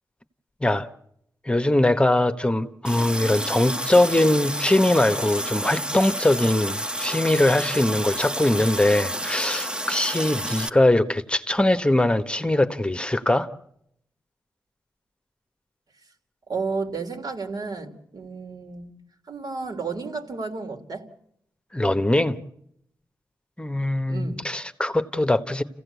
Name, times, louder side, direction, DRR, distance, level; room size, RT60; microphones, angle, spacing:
voice 1, 1.5-13.5 21.7-22.4 23.6-25.6, left 1 dB, 15° left, 1.2 m, -21 dB
Water tap faucet, 2.9-10.7, right 1 dB, 15° right, 1.1 m, -30 dB
voice 2, 16.5-18.9 19.3-21.1 24.1-24.4, right 4 dB, 65° right, 3.3 m, -32 dB
29.0 x 16.0 x 8.3 m
cardioid pair, 55°, 7 cm